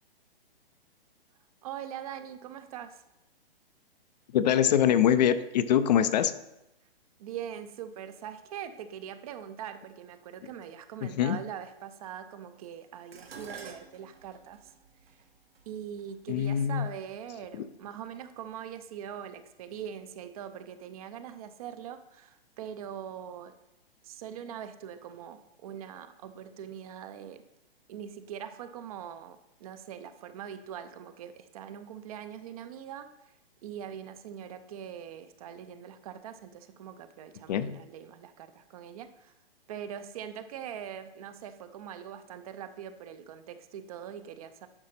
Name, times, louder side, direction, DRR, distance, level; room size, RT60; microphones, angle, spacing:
voice 1, 1.6-3.0 7.2-14.7 15.7-23.5 24.0-27.4 27.9-33.3 33.6-39.3 39.7-44.7, right 9 dB, 40° right, 10 dB, 0.6 m, -42 dB
voice 2, 4.3-6.3 11.0-11.4 16.3-16.9 17.5-17.6 37.5-37.8, left 9 dB, 45° left, 12 dB, 0.6 m, -24 dB
Dishes pots and pans, 13.1-17.5 18.4-18.8 19.1-20.0 20.2-20.3, right 5 dB, 80° right, 1.3 m, -50 dB
10.5 x 5.0 x 4.1 m, 0.88 s
figure-of-eight pair, 125°, 30 cm